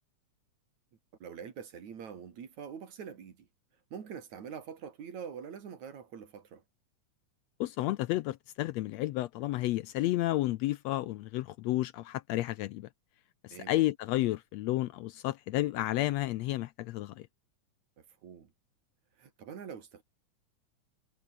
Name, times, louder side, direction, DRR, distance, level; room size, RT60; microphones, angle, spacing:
voice 1, 1.2-3.5 3.9-6.6 13.5-13.7 18.0-18.5 19.2-20.0, right 7 dB, 70° right, 4.0 m, -44 dB
voice 2, 7.6-12.9 13.4-17.3, left 16 dB, 75° left, 1.6 m, -31 dB
omnidirectional pair, 3.4 m